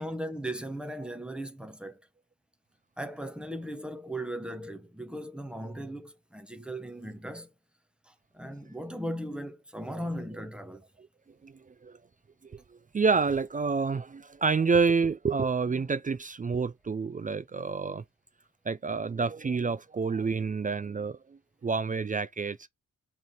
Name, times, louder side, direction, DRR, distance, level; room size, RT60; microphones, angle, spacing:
voice 1, 0.0-2.0 3.0-7.5 8.1-10.8, right 1 dB, 5° right, 1.0 m, -37 dB
voice 2, 11.4-12.0 12.4-12.6 12.9-18.0 18.7-22.7, right 4 dB, 25° right, 0.4 m, -28 dB
6.5 x 3.5 x 4.4 m
cardioid pair, 105°, 33 cm